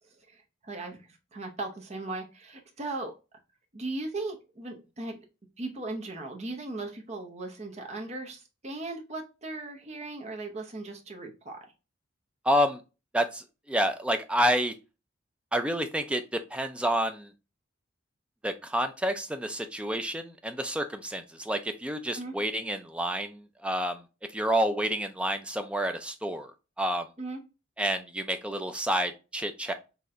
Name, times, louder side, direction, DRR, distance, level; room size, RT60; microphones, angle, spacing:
voice 1, 0.3-3.1 3.7-5.2 5.6-11.7 22.1-22.3 27.2-27.4, right 2 dB, 35° right, 2 dB, 0.8 m, -38 dB
voice 2, 12.5-12.8 13.1-14.7 15.5-17.3 18.4-24.0 24.3-26.5 26.8-27.1 27.8-29.7, equal, 5° right, 7 dB, 0.4 m, -29 dB
4.2 x 2.9 x 2.4 m, 0.29 s
head